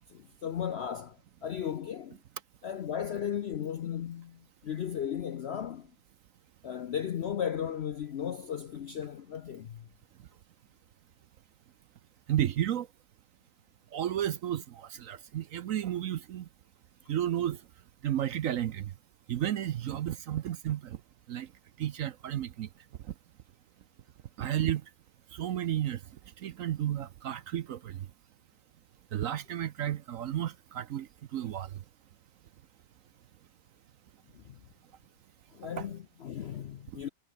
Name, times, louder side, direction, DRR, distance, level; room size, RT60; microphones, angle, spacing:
voice 1, 0.1-2.2 2.6-5.9 6.6-9.9 34.3-34.6 35.5-37.1, left 9 dB, 65° left, 0.6 m, -36 dB
voice 2, 12.3-12.9 13.9-16.5 17.1-17.6 18.0-18.9 19.3-21.0 21.3-21.5 21.8-22.7 24.4-24.8 25.3-26.0 26.4-28.0 29.1-31.1 31.3-31.7 35.8-35.9, right 11 dB, 60° right, 0.9 m, -32 dB
omnidirectional pair, 1.8 m